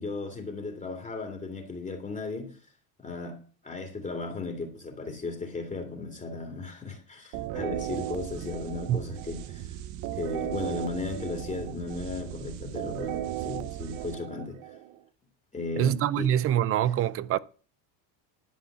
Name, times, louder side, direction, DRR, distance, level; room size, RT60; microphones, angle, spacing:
voice 1, 0.0-2.6 3.0-9.7 10.1-14.6 15.5-16.3 16.8-16.9, left 3 dB, 15° left, 2.4 m, -36 dB
sound 1, 7.3-15.0, right 12 dB, 60° right, 1.2 m, -36 dB
voice 2, 15.8-17.4, right 11 dB, 30° right, 0.4 m, -25 dB
11.5 x 5.0 x 7.8 m
cardioid pair, 135°, 49 cm